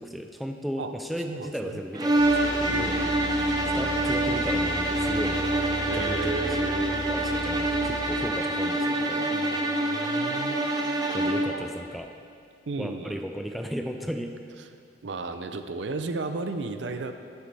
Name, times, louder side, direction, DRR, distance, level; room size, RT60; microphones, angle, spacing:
voice 1, 0.0-3.0 3.7-5.4 5.9-6.8 7.1-9.3 11.1-12.1 12.8-14.3, equal, ahead, 4 dB, 0.4 m, -35 dB
voice 2, 1.3-1.8 2.7-3.2 5.9-7.0 9.3-10.6 11.4-11.7 12.7-13.2 15.0-17.1, right 3 dB, 70° right, 8 dB, 0.5 m, -34 dB
sound 1, 1.9-11.6, right 1 dB, 20° right, 0.7 m, -26 dB
sound 2, 2.2-8.3, left 1 dB, 30° left, 1.9 m, -36 dB
10.5 x 9.1 x 3.4 m, 2.2 s
head